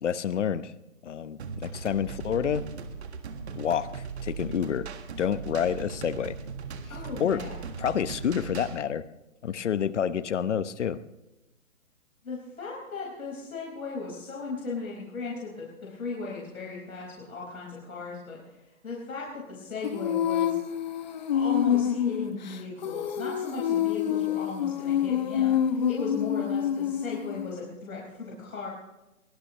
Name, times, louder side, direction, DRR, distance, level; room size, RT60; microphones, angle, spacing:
voice 1, 0.0-0.7 1.0-2.6 3.6-4.9 5.2-6.4 7.2-7.4 7.8-9.0 9.4-11.0, left 8 dB, 55° left, 14 dB, 0.9 m, -28 dB
sound 1, 1.4-8.8, right 5 dB, 50° right, 1.7 m, -38 dB
voice 2, 6.9-7.6 12.2-20.6 21.3-28.7, left 4 dB, 80° left, -3 dB, 5.0 m, -36 dB
Female singing, 19.8-27.5, left 9 dB, 30° left, 0.9 m, -27 dB
22.5 x 18.0 x 3.1 m, 0.99 s
hypercardioid pair, 160°, 42 cm